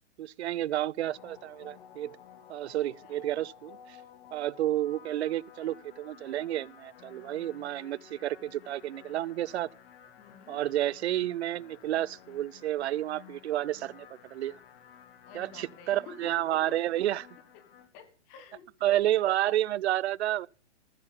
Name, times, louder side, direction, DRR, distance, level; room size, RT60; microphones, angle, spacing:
voice 1, 0.2-2.2 2.5-4.0 4.3-9.7 10.5-14.6 15.3-17.3 18.8-20.5, right 13 dB, 65° right, 0.6 m, -30 dB
sound 1, 1.0-17.9, left 9 dB, 50° left, 1.8 m, -54 dB
voice 2, 2.7-3.2 10.2-10.6 15.3-16.8 17.5-18.8, left 7 dB, 25° left, 1.5 m, -51 dB
15.0 x 7.1 x 7.0 m
hypercardioid pair, 150°, 36 cm